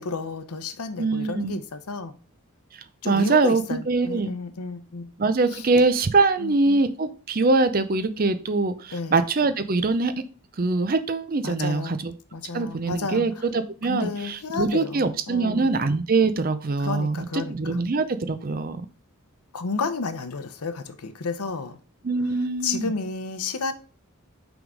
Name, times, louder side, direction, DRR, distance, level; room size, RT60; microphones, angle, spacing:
voice 1, 0.0-2.1 3.0-5.1 5.5-5.6 6.4-6.8 8.9-9.2 11.4-12.0 12.3-13.2 13.9-15.7 16.8-17.8 19.5-21.8 22.6-23.7, left 4 dB, 90° left, 0.7 m, -31 dB
voice 2, 1.0-1.6 2.7-4.3 5.2-10.1 10.6-12.1 12.5-18.8 22.0-22.9, right 3 dB, 40° right, 0.5 m, -23 dB
6.0 x 3.6 x 4.9 m
head